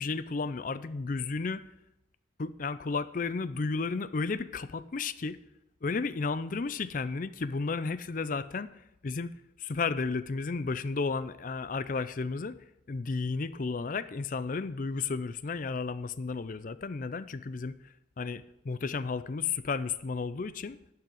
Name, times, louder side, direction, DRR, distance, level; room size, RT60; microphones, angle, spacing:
voice 1, 0.0-1.6 2.4-5.4 5.8-8.7 9.0-9.3 9.6-12.6 12.9-17.7 18.2-20.8, left 4 dB, 45° left, 15 dB, 0.5 m, -33 dB
10.5 x 5.8 x 7.6 m, 0.86 s
head